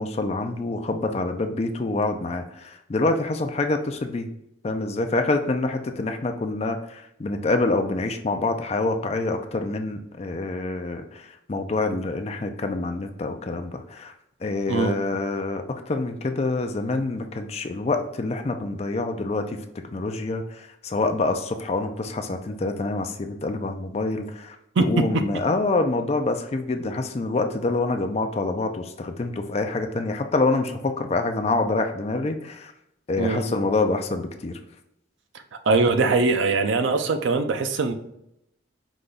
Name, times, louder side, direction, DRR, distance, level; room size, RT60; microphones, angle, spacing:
voice 1, 0.0-4.3 4.6-11.2 11.5-14.1 14.4-19.6 19.9-32.7 33.1-34.5, left 2 dB, 30° left, 6 dB, 0.4 m, -26 dB
voice 2, 33.2-33.5 35.7-37.9, right 3 dB, 75° right, 8 dB, 0.5 m, -21 dB
4.9 x 2.3 x 3.9 m, 0.81 s
head